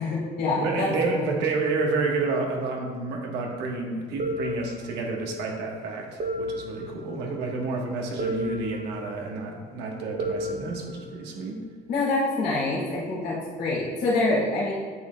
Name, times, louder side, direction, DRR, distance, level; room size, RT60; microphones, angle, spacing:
voice 1, 0.0-1.3 11.9-14.7, left 2 dB, 70° left, -6 dB, 2.1 m, -26 dB
voice 2, 0.5-11.6, right 3 dB, 85° right, 0 dB, 1.3 m, -29 dB
sound 1, 4.2-5.4 6.2-7.4 8.2-9.4 10.2-11.4, equal, 40° right, 1.1 m, -33 dB
8.4 x 7.3 x 2.3 m, 1.5 s
cardioid pair, 110°, 17 cm